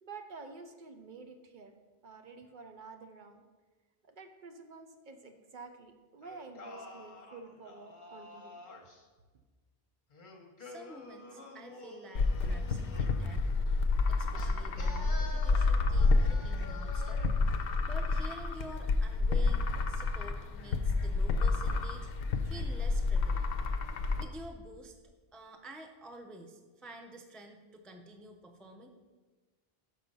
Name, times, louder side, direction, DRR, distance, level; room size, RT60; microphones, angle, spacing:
voice 1, 0.0-1.7 2.0-3.4 4.1-8.6, right 4 dB, 55° right, 6 dB, 0.7 m, -49 dB
Singing, 6.2-9.0 10.1-13.3 14.3-17.4, left 2 dB, 50° left, 1.1 m, -49 dB
voice 2, 10.6-13.6 14.1-17.2 17.9-22.1 22.4-23.5 24.2-24.9 25.3-28.9, right 1 dB, ahead, 4 dB, 0.3 m, -49 dB
sound 1, 12.1-24.2, left 3 dB, 70° left, 0.8 m, -29 dB
6.1 x 5.9 x 5.4 m, 1.3 s
omnidirectional pair, 1.0 m